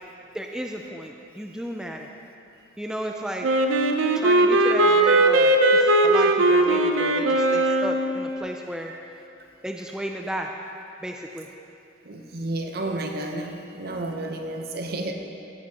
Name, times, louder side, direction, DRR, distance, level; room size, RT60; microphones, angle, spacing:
voice 1, 0.3-2.1 2.8-3.5 4.1-8.9 9.6-10.5 11.0-11.5, equal, 5° right, 1 dB, 0.3 m, -34 dB
Wind instrument woodwind instrument, 3.4-8.2, right 1 dB, 90° right, 0.7 m, -19 dB
voice 2, 12.0-15.1, right 2 dB, 55° right, 4 dB, 0.8 m, -31 dB
16.0 x 9.5 x 2.9 m, 2.8 s
head